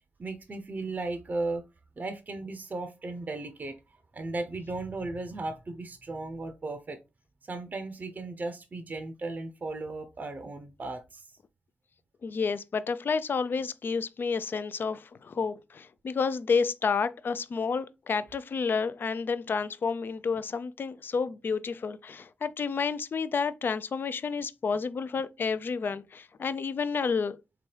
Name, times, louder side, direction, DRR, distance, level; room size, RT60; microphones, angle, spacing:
voice 1, 0.2-1.6 2.0-3.8 4.1-7.0 7.5-11.3, right 2 dB, 45° right, 0.6 m, -36 dB
voice 2, 12.2-27.4, left 5 dB, 55° left, 0.4 m, -30 dB
3.4 x 2.9 x 3.2 m
supercardioid pair, 45°, 4 cm